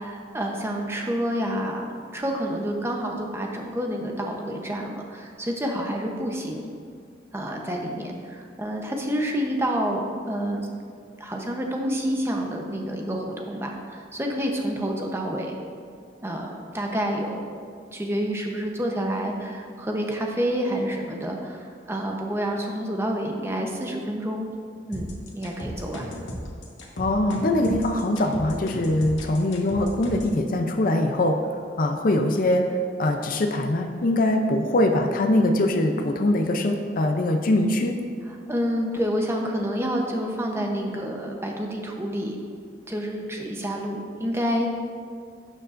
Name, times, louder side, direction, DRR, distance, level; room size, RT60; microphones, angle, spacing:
voice 1, 0.0-1.8 2.1-6.7 7.3-10.6 11.2-15.6 16.2-17.5 17.9-24.5 24.9-26.1 38.5-42.4 42.9-44.7, equal, 15° right, 1 dB, 0.8 m, -28 dB
sound 1, 24.9-30.4, equal, 85° left, 1.3 m, -35 dB
voice 2, 27.0-31.5 31.8-38.0, left 1 dB, 50° left, 4 dB, 0.5 m, -22 dB
12.0 x 6.7 x 2.5 m, 2.1 s
head